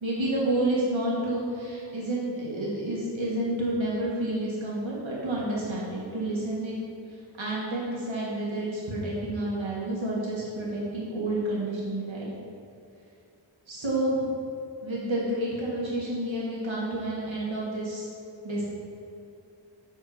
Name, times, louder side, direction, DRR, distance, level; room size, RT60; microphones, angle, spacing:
voice 1, 0.0-6.8 7.4-12.3 13.7-14.3 14.8-18.1 18.4-18.6, right 1 dB, 85° right, -6 dB, 1.7 m, -29 dB
7.4 x 4.6 x 4.9 m, 2.5 s
wide cardioid pair, 65°, 46 cm